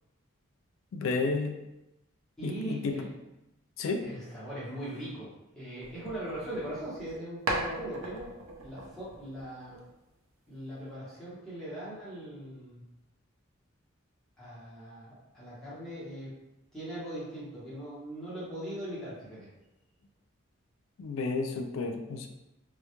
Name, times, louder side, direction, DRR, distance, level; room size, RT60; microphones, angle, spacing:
voice 1, 0.9-1.6 2.4-3.0 3.8-4.0 21.0-22.3, left 3 dB, 80° left, 5 dB, 0.3 m, -31 dB
voice 2, 2.4-3.1 4.1-8.3 8.6-9.8 10.5-12.8 14.4-16.3 16.7-19.5, right 1 dB, ahead, -11 dB, 0.8 m, -40 dB
sound 1, 5.8-7.2 7.5-10.1, right 2 dB, 80° right, 0.5 m, -38 dB
2.2 x 2.0 x 2.9 m, 0.93 s
head